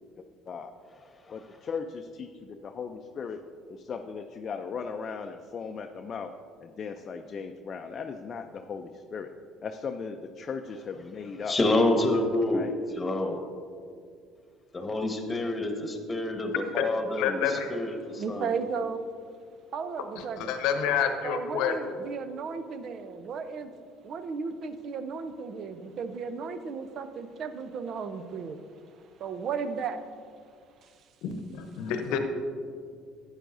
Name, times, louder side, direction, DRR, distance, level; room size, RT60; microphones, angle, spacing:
voice 1, 0.2-0.8 1.3-6.3 6.6-9.3 9.6-11.6 12.5-12.8, left 5 dB, 40° left, 5 dB, 0.5 m, -38 dB
voice 2, 11.5-12.7 13.0-13.4 14.7-18.5 32.1-32.2, left 2 dB, 20° left, 5 dB, 1.4 m, -28 dB
voice 3, 17.2-17.7 20.4-21.7 31.2-32.2, left 7 dB, 75° left, 6 dB, 0.9 m, -28 dB
voice 4, 18.1-19.1 19.7-20.6 21.2-23.7 24.0-30.0 30.8-31.0, right 5 dB, 55° right, 10 dB, 0.7 m, -35 dB
12.0 x 9.0 x 2.7 m, 2.2 s
hypercardioid pair, 70°, 0 cm